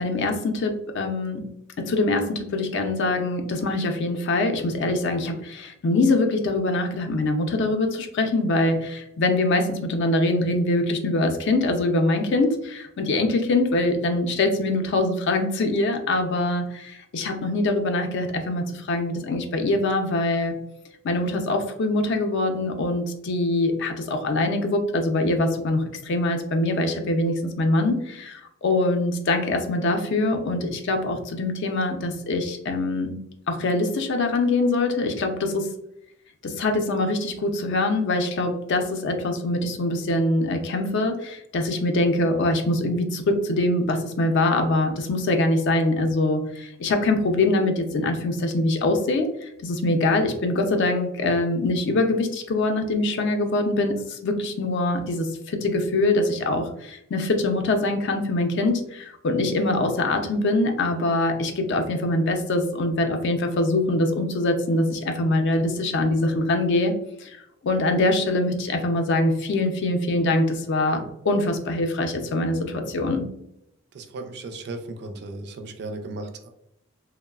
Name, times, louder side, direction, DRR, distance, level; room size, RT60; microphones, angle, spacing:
voice 1, 0.0-1.4 1.8-20.5 21.0-33.1 33.5-35.7 36.4-66.9 67.2-67.4 67.6-73.2, left 2 dB, 55° left, 5 dB, 0.4 m, -23 dB
voice 2, 73.9-76.5, right 2 dB, 50° right, 6 dB, 0.4 m, -36 dB
3.0 x 2.0 x 2.2 m, 0.78 s
head